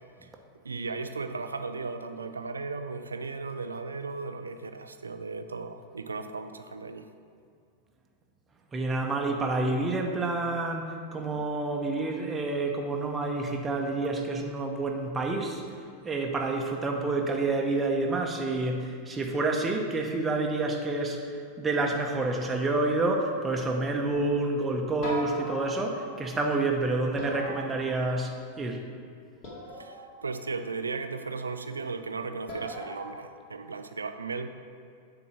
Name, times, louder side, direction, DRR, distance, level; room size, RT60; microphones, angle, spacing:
voice 1, 0.6-7.1 29.7-34.5, right 4 dB, 75° right, 8 dB, 0.4 m, -36 dB
voice 2, 8.7-28.8, right 2 dB, 15° right, 1 dB, 0.8 m, -29 dB
sound 1, 22.2-23.1 25.0-26.4 27.2-28.5 29.4-30.3 32.5-33.1, equal, 40° left, 2.1 m, -40 dB
9.4 x 3.9 x 6.1 m, 2.3 s
figure-of-eight pair, 90°, 0 cm